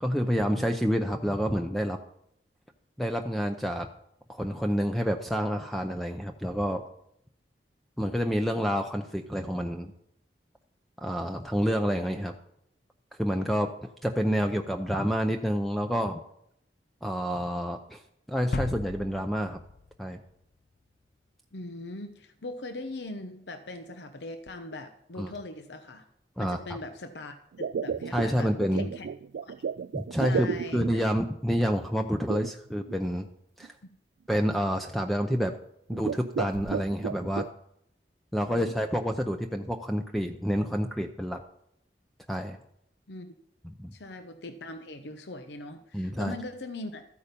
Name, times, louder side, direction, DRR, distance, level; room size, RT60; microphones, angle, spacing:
voice 1, 0.0-2.0 3.0-3.9 4.3-6.8 8.0-9.9 11.0-12.3 13.2-13.7 14.0-16.2 17.0-18.0 18.3-19.6 20.0-20.2 25.2-25.3 26.4-26.6 28.1-28.9 29.9-33.3 33.6-33.7 34.3-35.5 35.9-37.4 38.3-41.4 42.3-42.6 43.6-43.9 45.9-46.3, equal, ahead, 5 dB, 0.6 m, -28 dB
sound 1, 18.5-20.6, left 3 dB, 55° left, 0.4 m, -36 dB
voice 2, 21.5-26.1 26.4-29.1 29.4-29.5 30.2-31.0 38.5-38.7 43.1-43.3 43.9-47.0, left 2 dB, 80° left, 8 dB, 0.9 m, -40 dB
sound 2, 27.5-31.1 32.3-33.0 33.6-33.7 34.3-34.6 35.2-35.5 35.9-37.5, right 6 dB, 85° right, 0.3 m, -33 dB
14.0 x 8.6 x 5.3 m, 0.74 s
head